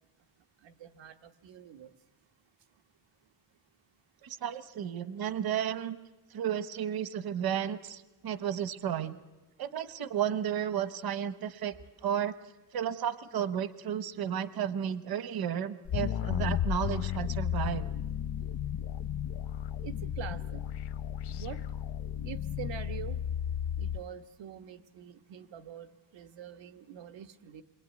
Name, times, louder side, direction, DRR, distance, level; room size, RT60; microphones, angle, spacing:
voice 1, 0.6-1.9 19.8-20.6 21.3-21.6 22.2-23.2 23.8-27.6, right 9 dB, 90° right, 8 dB, 1.4 m, -45 dB
voice 2, 4.2-6.0 6.3-9.2 9.6-11.8 12.0-12.4 12.7-17.9, right 9 dB, 55° right, 13 dB, 1.1 m, -33 dB
sound 1, 15.9-24.0, left 9 dB, 65° left, 0.9 m, -34 dB
28.0 x 22.5 x 9.4 m, 1.1 s
wide cardioid pair, 170°, 43 cm